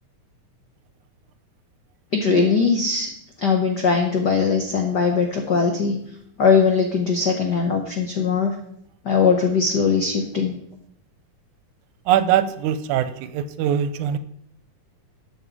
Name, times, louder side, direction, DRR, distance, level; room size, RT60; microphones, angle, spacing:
voice 1, 2.1-3.1 3.4-6.0 6.4-8.5 9.0-10.5, left 5 dB, 80° left, 3 dB, 0.9 m, -20 dB
voice 2, 12.1-14.2, right 10 dB, 90° right, 13 dB, 2.1 m, -22 dB
12.0 x 7.1 x 4.9 m, 0.70 s
omnidirectional pair, 3.5 m